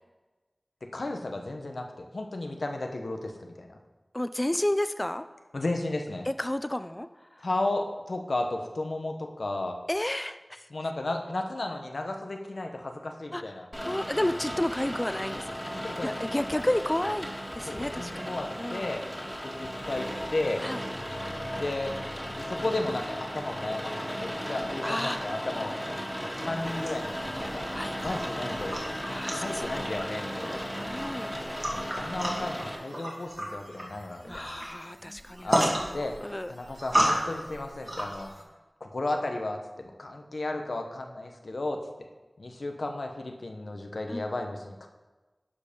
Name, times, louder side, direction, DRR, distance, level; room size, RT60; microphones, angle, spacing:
voice 1, 0.9-3.8 5.5-6.3 7.4-9.8 10.7-13.7 15.8-16.7 17.0-17.2 17.7-19.0 19.4-20.6 21.6-21.9 22.3-25.8 26.4-27.7 28.0-29.0 29.3-30.6 31.7-34.5 35.4-35.7 35.9-36.1 36.5-38.3 38.8-42.1 42.4-44.9, left 2 dB, 90° left, 4 dB, 1.0 m, -34 dB
voice 2, 4.1-5.2 6.3-7.1 9.9-10.6 13.3-13.4 13.8-15.6 16.0-18.3 18.6-18.9 20.6-20.8 24.8-25.2 27.7-28.0 29.0-29.9 30.7-31.3 34.3-36.5 44.1-44.2, left 1 dB, 25° left, 11 dB, 0.4 m, -31 dB
Rain, 13.7-32.7, equal, ahead, 2.1 m, -36 dB
sound 1, 14.2-23.8, left 1 dB, 45° left, 1.2 m, -52 dB
sound 2, 26.6-38.4, equal, 40° right, 2.4 m, -33 dB
11.5 x 5.4 x 5.2 m, 1.2 s
wide cardioid pair, 40°, 0 cm